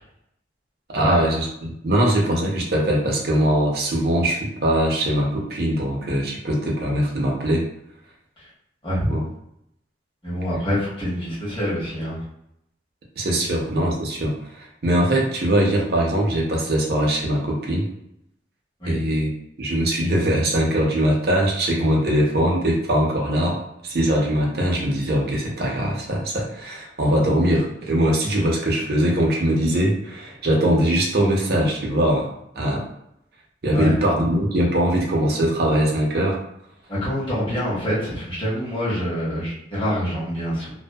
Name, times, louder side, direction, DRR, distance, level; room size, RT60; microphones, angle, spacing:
voice 1, 0.9-7.7 9.1-9.2 13.2-17.9 18.9-19.3 19.6-32.3 32.6-32.8 33.6-36.4, right 1 dB, 55° right, -1 dB, 0.6 m, -21 dB
voice 2, 10.2-12.2 18.8-19.0 33.7-33.9 36.9-40.7, equal, 25° left, -9 dB, 1.1 m, -25 dB
2.6 x 2.1 x 2.2 m, 0.80 s
head